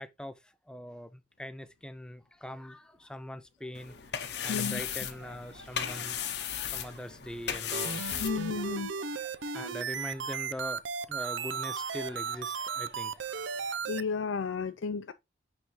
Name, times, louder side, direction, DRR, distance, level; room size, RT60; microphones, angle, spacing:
voice 1, 0.0-6.2 6.6-8.0 9.5-13.4, left 1 dB, 5° left, 0.4 m, -42 dB
sound 1, 3.7-8.9, left 9 dB, 60° left, 0.8 m, -36 dB
voice 2, 4.5-4.8 8.2-8.9 13.9-15.1, left 5 dB, 80° left, 0.4 m, -32 dB
sound 2, 5.0-13.8, right 2 dB, 55° right, 1.6 m, -53 dB
sound 3, 7.7-14.0, right 6 dB, 80° right, 0.5 m, -35 dB
9.3 x 3.5 x 3.0 m
head